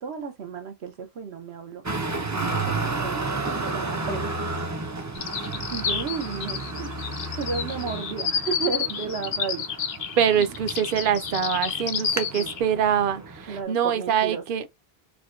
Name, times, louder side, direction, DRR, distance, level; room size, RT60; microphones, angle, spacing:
voice 1, 0.0-1.8 2.3-4.3 5.7-6.9 7.3-9.9 10.3-10.5 12.3-12.5 13.5-14.4, right 6 dB, 85° right, 1.0 m, -33 dB
Traffic noise roadway noise, 1.8-13.6, right 3 dB, 25° right, 0.4 m, -32 dB
sound 1, 5.1-12.6, left 7 dB, 65° left, 0.8 m, -30 dB
voice 2, 10.2-14.6, right 8 dB, 60° right, 0.7 m, -24 dB
4.7 x 2.1 x 2.4 m
omnidirectional pair, 1.1 m